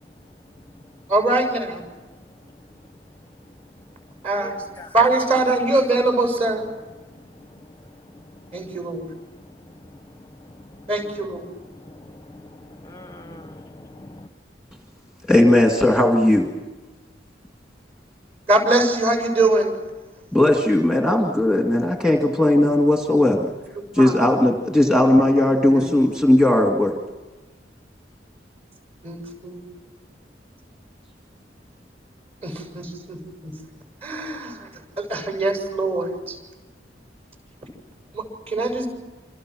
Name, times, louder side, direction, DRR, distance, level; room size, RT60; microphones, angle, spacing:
voice 1, 1.1-1.8 4.2-4.5 4.9-6.6 8.5-9.1 10.9-11.5 18.5-19.7 24.0-24.1 25.7-25.8 29.0-29.6 32.4-33.5 34.0-34.7 35.0-36.3 38.1-38.9, right 2 dB, 35° right, 6.9 m, -22 dB
voice 2, 4.4-4.9 7.5-7.6 8.7-8.8 10.7-10.9 11.8-14.3, left 1 dB, 20° left, 0.8 m, -42 dB
voice 3, 15.3-16.5 20.3-23.5 23.9-27.0, left 1 dB, 5° right, 2.0 m, -17 dB
28.0 x 27.0 x 6.3 m
head